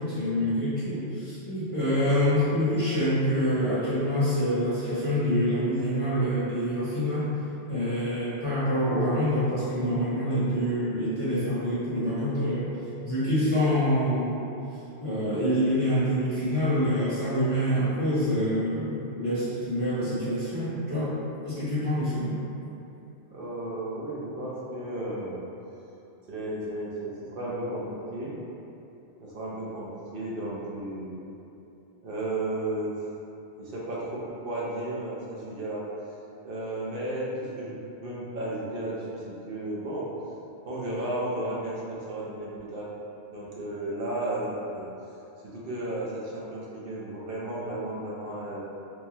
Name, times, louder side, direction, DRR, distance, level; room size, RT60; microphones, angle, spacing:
voice 1, 0.0-7.3 7.7-12.7 13.0-14.4 15.0-21.1 21.4-22.4, equal, 35° left, -12 dB, 0.7 m, -26 dB
voice 2, 23.3-25.4 26.3-28.3 29.2-31.2 32.0-32.9 33.6-35.8 36.4-40.4 40.7-41.8 42.1-42.9 43.3-44.9 45.4-48.6, right 1 dB, 60° right, -6 dB, 0.7 m, -34 dB
3.2 x 2.2 x 2.7 m, 2.9 s
omnidirectional pair, 1.1 m